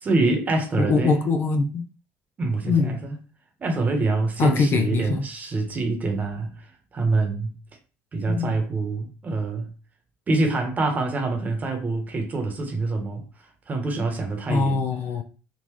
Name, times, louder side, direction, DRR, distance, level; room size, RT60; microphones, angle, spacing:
voice 1, 0.0-1.2 2.4-3.2 3.6-6.7 6.9-7.5 8.1-9.7 10.3-13.2 13.7-14.8, right 3 dB, 35° right, 1.1 m, -25 dB
voice 2, 0.8-1.9 2.7-3.0 4.4-5.2 8.3-8.5 14.5-15.2, left 4 dB, 50° left, 0.5 m, -22 dB
3.8 x 2.4 x 3.0 m
supercardioid pair, 85°, 5 cm